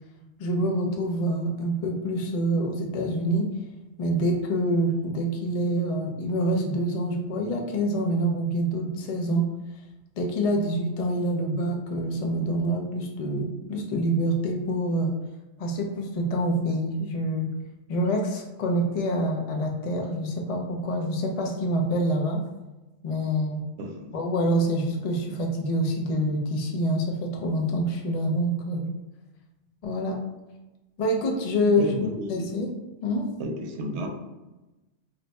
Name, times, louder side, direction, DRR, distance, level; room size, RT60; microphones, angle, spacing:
voice 1, 0.4-3.5 4.0-9.5 10.2-15.2 15.6-17.5 17.9-22.4 23.0-23.6 24.1-28.9 29.8-30.2 31.0-31.9 32.3-32.7 33.0-33.2, equal, 60° left, 1 dB, 0.4 m, -26 dB
voice 2, 23.8-24.1 31.7-32.3 33.4-34.1, right 1 dB, 75° right, 3 dB, 0.8 m, -32 dB
2.5 x 2.2 x 3.9 m, 1.1 s
omnidirectional pair, 1.2 m